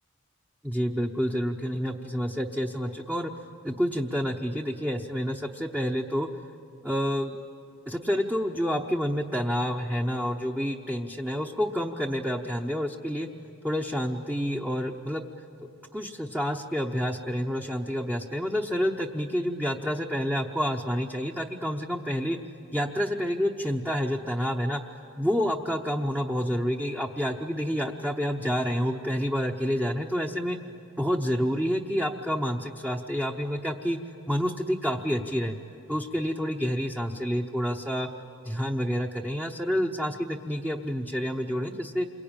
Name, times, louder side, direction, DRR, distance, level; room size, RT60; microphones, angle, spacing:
voice 1, 0.6-3.3 3.6-6.3 6.8-7.4 7.9-13.3 13.6-15.2 15.9-22.4 22.7-24.8 25.2-30.6 31.0-34.0 34.3-35.6 35.9-38.1 38.4-42.1, equal, 5° right, 0 dB, 0.8 m, -28 dB
28.5 x 23.0 x 8.9 m, 2.8 s
head